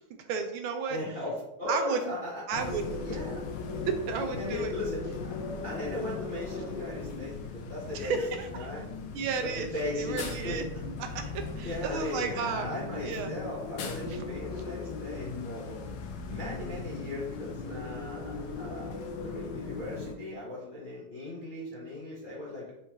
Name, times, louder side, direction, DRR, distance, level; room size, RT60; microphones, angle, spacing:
voice 1, 0.3-1.0 1.7-2.1 2.5-3.0 3.9-4.7 7.9-8.7 9.1-9.7 10.0-10.6 11.0-12.7 13.0-13.3 14.1-14.2, right 5 dB, 80° right, 5 dB, 1.4 m, -33 dB
voice 2, 0.9-2.6 3.0-3.4 4.3-5.1 5.6-8.2 8.5-8.9 9.4-10.9 11.6-15.9 16.2-22.7, left 2 dB, 45° left, -8 dB, 0.7 m, -37 dB
sound 1, 2.5-20.1, left 4 dB, 70° left, 1.1 m, -38 dB
4.4 x 3.6 x 3.0 m, 0.88 s
omnidirectional pair, 2.4 m